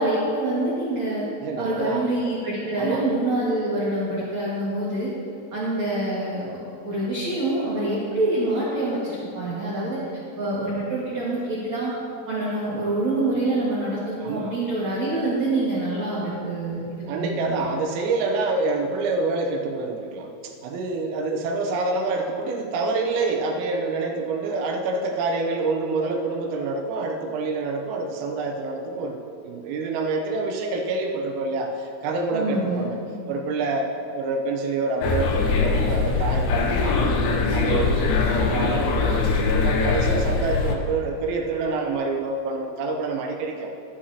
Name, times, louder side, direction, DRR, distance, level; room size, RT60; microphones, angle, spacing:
voice 1, 0.0-1.3 1.6-5.1 5.5-6.6 6.8-10.0 10.4-11.9 12.3-17.7 32.3-32.9, right 2 dB, 55° right, -8 dB, 2.1 m, -26 dB
voice 2, 1.4-2.0 2.8-3.0 14.2-14.5 17.1-33.0 33.3-37.1 37.5-43.7, right 3 dB, 85° right, 2 dB, 3.5 m, -27 dB
sound 1, 35.0-40.7, left 4 dB, 70° left, 2.8 m, -22 dB
15.0 x 12.5 x 2.9 m, 2.6 s
omnidirectional pair, 5.9 m